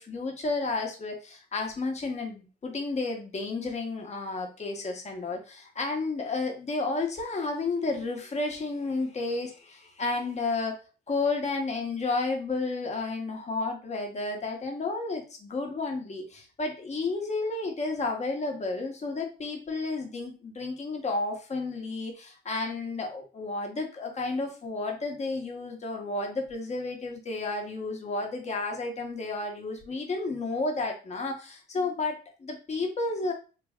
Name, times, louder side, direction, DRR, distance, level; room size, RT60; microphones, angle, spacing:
voice 1, 0.0-10.8 11.1-33.3, left 3 dB, 35° left, 2 dB, 1.1 m, -32 dB
3.3 x 2.2 x 3.5 m, 0.35 s
cardioid pair, 90°, 20 cm